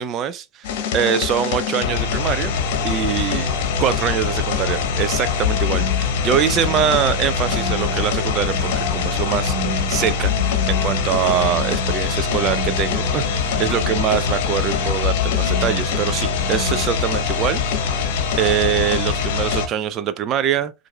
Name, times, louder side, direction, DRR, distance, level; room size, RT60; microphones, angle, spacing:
voice 1, 0.0-2.5 2.8-3.5 3.8-10.3 10.7-18.1 18.4-20.7, right 9 dB, 30° right, 0.3 m, -23 dB
sound 1, 0.6-19.7, left 6 dB, 50° left, 1.0 m, -22 dB
sound 2, 5.5-16.9, right 3 dB, 75° right, 1.0 m, -33 dB
7.4 x 2.5 x 2.2 m
figure-of-eight pair, 90°, 0 cm